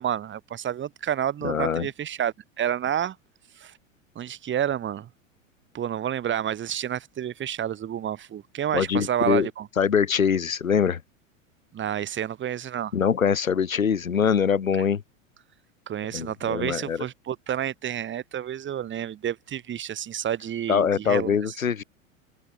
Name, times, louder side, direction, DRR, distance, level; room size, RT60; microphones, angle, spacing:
voice 1, 0.0-3.2 3.6-3.7 4.2-5.1 5.7-9.7 11.7-12.9 15.9-21.3, right 10 dB, 30° right, 3.6 m, -29 dB
voice 2, 1.4-1.9 8.7-9.5 9.8-11.0 12.9-15.0 16.1-17.1 20.7-21.8, left 7 dB, 85° left, 2.4 m, -23 dB
hypercardioid pair, 95°, 40 cm